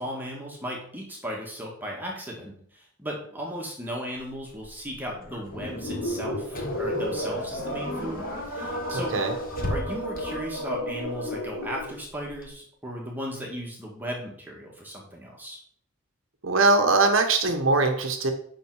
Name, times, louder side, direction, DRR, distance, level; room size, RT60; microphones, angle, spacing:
voice 1, 0.0-9.1 9.7-15.6, equal, 10° right, -2 dB, 1.6 m, -36 dB
Car / Engine, 4.2-12.5, left 1 dB, 40° left, 1.5 m, -41 dB
sound 1, 5.5-12.0, equal, 65° left, 3.6 m, -32 dB
voice 2, 8.9-9.3 16.4-18.3, right 3 dB, 60° right, 5 dB, 1.1 m, -21 dB
8.4 x 5.9 x 4.7 m, 0.62 s
head